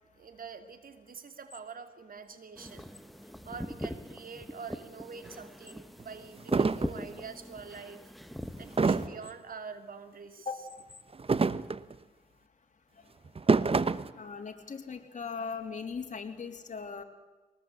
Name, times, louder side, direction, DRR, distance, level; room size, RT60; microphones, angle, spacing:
voice 1, 0.1-2.9 3.5-8.1 8.6-10.5, right 5 dB, 70° right, 9 dB, 2.6 m, -45 dB
sound 1, 2.6-9.1, equal, ahead, 1.7 m, -42 dB
sound 2, 5.3-5.4 6.0-6.1 6.5-6.9 8.8-9.3 11.1-11.9 13.2-14.1, right 4 dB, 40° right, 1.0 m, -26 dB
voice 2, 14.1-17.0, left 5 dB, 55° left, 4 dB, 3.2 m, -38 dB
22.5 x 19.5 x 8.3 m, 1.2 s
cardioid pair, 60°, 15 cm